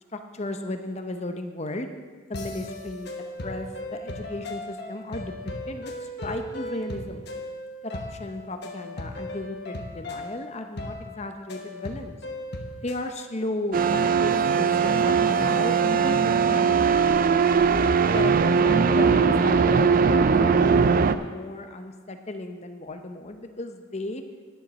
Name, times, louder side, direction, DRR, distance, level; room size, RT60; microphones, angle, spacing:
voice 1, 0.1-1.9 2.3-3.1 3.4-5.3 5.7-5.9 6.2-7.2 7.8-12.2 12.8-13.8 14.2-17.4 18.1-24.2, left 2 dB, 30° left, 7 dB, 0.7 m, -34 dB
sound 1, 2.3-13.0, left 1 dB, 50° left, 1.2 m, -37 dB
sound 2, 13.7-21.2, right 5 dB, 40° right, 0.3 m, -20 dB
10.5 x 7.2 x 6.1 m, 1.5 s
head